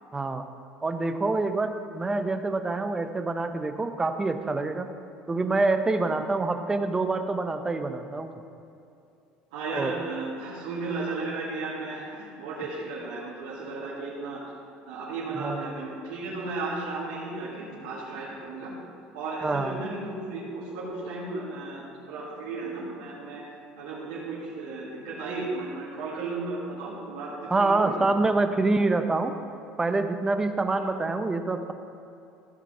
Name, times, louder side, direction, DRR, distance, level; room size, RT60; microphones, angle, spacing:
voice 1, 0.1-0.5 0.8-4.9 5.3-8.3 9.7-9.9 15.4-15.6 19.4-19.8 27.5-29.3 29.8-31.7, right 3 dB, 15° right, 8 dB, 0.7 m, -26 dB
voice 2, 9.5-14.4 14.9-18.8 19.1-23.4 23.7-28.1 30.7-30.9, right 3 dB, 90° right, -8 dB, 2.0 m, -34 dB
15.0 x 5.1 x 5.5 m, 2.6 s
supercardioid pair, 105°, 3 cm